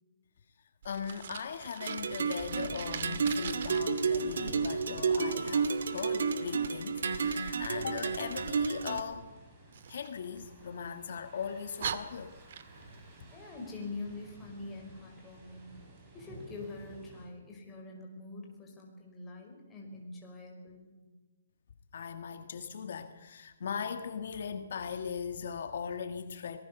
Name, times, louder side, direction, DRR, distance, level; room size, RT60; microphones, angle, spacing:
voice 1, 0.8-9.3 9.9-12.3 21.9-26.6, left 6 dB, 60° left, 8 dB, 1.5 m, -39 dB
Fire, 0.8-3.8 9.7-10.9 11.4-11.5 11.8-13.0, right 8 dB, 50° right, 1.8 m, -42 dB
sound 1, 1.8-9.0, right 5 dB, 75° right, 2.3 m, -31 dB
sound 2, 2.4-17.3, right 1 dB, 20° right, 7.2 m, -53 dB
voice 2, 13.3-15.7 16.1-21.2, left 3 dB, 10° left, -1 dB, 5.3 m, -45 dB
25.5 x 19.5 x 7.0 m, 1.2 s
hypercardioid pair, 170°, 0 cm